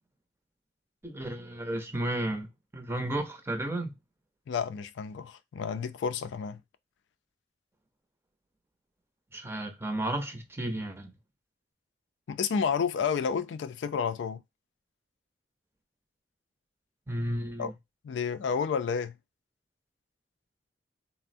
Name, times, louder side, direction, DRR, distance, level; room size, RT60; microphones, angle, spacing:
voice 1, 1.0-4.0 9.3-11.1 17.1-17.7, right 1 dB, 15° right, 0.6 m, -33 dB
voice 2, 4.5-6.6 12.3-14.4 17.6-17.7 18.0-19.1, left 6 dB, 85° left, 0.3 m, -30 dB
3.4 x 2.0 x 2.5 m
head